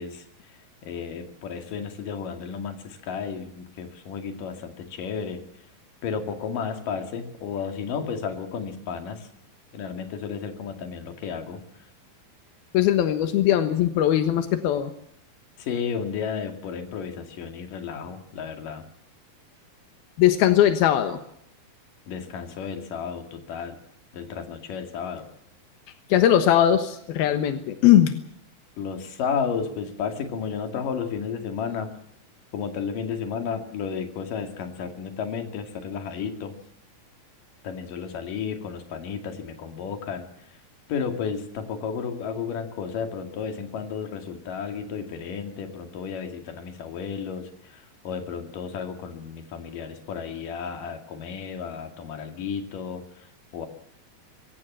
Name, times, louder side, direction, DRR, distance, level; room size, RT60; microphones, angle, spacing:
voice 1, 0.0-5.4 6.0-9.3 9.7-11.9 15.6-18.9 22.1-23.8 24.1-25.3 28.8-31.9 32.5-36.5 37.6-40.6 40.9-53.7, left 6 dB, 65° left, 6 dB, 3.8 m, -33 dB
voice 2, 12.7-14.9 20.2-21.2 26.1-28.1, left 11 dB, 90° left, 8 dB, 3.2 m, -20 dB
24.5 x 17.0 x 7.5 m, 0.72 s
omnidirectional pair, 4.3 m